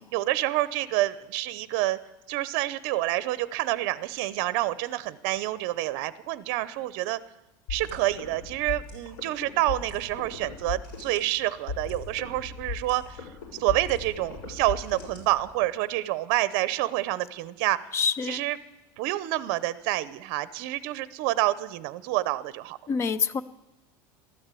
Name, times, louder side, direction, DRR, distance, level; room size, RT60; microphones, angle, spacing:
voice 1, 0.1-2.0 2.3-7.2 7.7-13.2 13.6-17.8 18.3-18.6 19.0-22.8, right 16 dB, 55° right, 16 dB, 0.7 m, -28 dB
sound 1, 7.7-15.7, left 4 dB, 85° left, 6.3 m, -38 dB
voice 2, 17.9-18.4 22.9-23.4, left 6 dB, 25° left, 16 dB, 0.5 m, -26 dB
13.5 x 12.5 x 8.3 m, 1.0 s
supercardioid pair, 165°, 11 cm